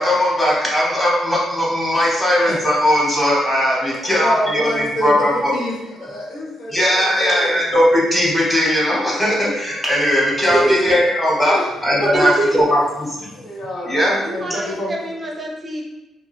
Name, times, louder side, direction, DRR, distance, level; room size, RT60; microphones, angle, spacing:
voice 1, 0.0-5.5 6.7-12.8 13.2-13.3 13.6-14.2, equal, 5° left, -5 dB, 0.9 m, -18 dB
voice 2, 4.1-7.6 11.4-11.6 12.0-12.3 13.3-15.0, left 1 dB, 80° left, -5 dB, 0.8 m, -27 dB
voice 3, 10.5-10.9 12.1-12.6 14.2-15.8, right 1 dB, 30° right, -1 dB, 0.5 m, -22 dB
2.3 x 2.2 x 3.1 m, 1.0 s
cardioid pair, 90°, 0 cm